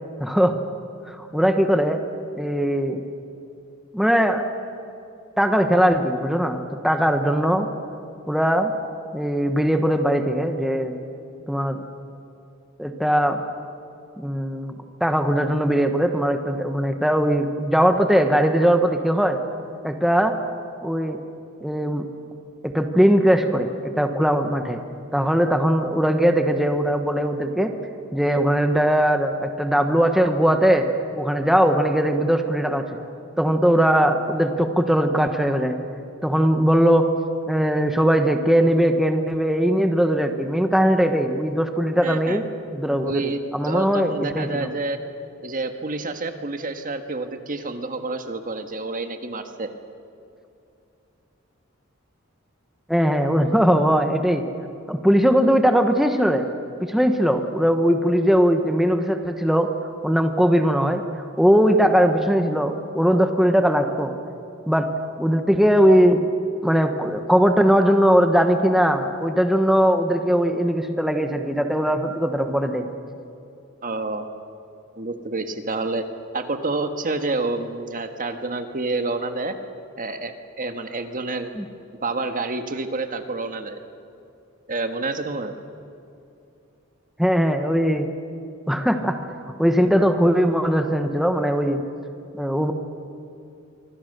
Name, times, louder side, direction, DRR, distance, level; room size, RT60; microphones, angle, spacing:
voice 1, 0.2-0.5 1.1-2.0 2.4-3.0 3.9-4.4 5.4-7.7 8.3-8.7 9.1-11.0 11.5-11.8 12.8-13.4 14.2-14.7 15.0-19.4 19.8-20.3 20.8-21.2 21.6-22.1 22.7-24.8 25.1-27.7 28.1-30.9 31.2-33.0 33.4-35.8 36.2-37.1 37.5-42.5 42.7-44.7 52.9-54.4 54.9-56.5 56.9-59.7 60.0-64.1 64.7-64.9 65.2-66.2 66.6-72.9 81.6-81.7 87.2-88.1 88.7-89.2 89.6-91.8 92.3-92.7, equal, ahead, 5 dB, 1.1 m, -20 dB
voice 2, 42.0-42.4 43.0-43.4 43.6-45.0 45.4-49.7 73.8-74.3 75.0-76.1 76.3-79.6 80.0-81.5 82.0-83.8 84.7-85.5, right 3 dB, 45° right, 7 dB, 1.6 m, -28 dB
25.5 x 24.5 x 6.7 m, 2.6 s
head